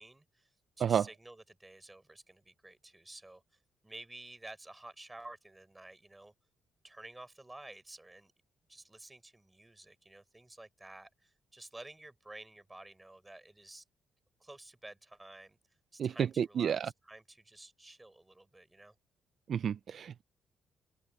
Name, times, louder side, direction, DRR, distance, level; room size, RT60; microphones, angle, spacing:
voice 1, 0.0-3.4 3.8-6.3 6.8-8.3 8.7-13.8 14.4-15.6 15.9-18.9, right 2 dB, 15° right, 6.7 m, -52 dB
voice 2, 16.0-16.9 19.5-20.2, right 8 dB, 55° right, 0.4 m, -31 dB
open air
cardioid pair, 90°, 0 cm